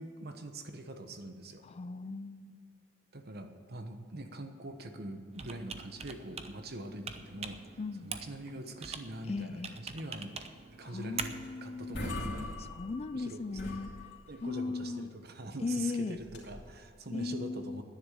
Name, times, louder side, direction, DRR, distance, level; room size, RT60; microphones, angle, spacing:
voice 1, 0.0-1.6 3.1-7.6 8.0-10.4 10.8-12.5 13.1-13.6 14.3-17.8, right 1 dB, 55° right, 7 dB, 1.2 m, -43 dB
voice 2, 1.6-2.6 7.8-8.1 9.3-9.8 10.8-12.0 12.6-13.9 14.4-15.1 15.6-16.2 17.1-17.8, left 3 dB, 30° left, 13 dB, 0.4 m, -37 dB
Computer keyboard, 5.3-12.0, right 5 dB, 30° right, 0.7 m, -45 dB
sound 1, 11.4-11.5 11.8-13.2 13.5-14.5 16.2-16.8, left 1 dB, 60° left, 2.9 m, -40 dB
10.5 x 10.5 x 7.6 m, 2.3 s
head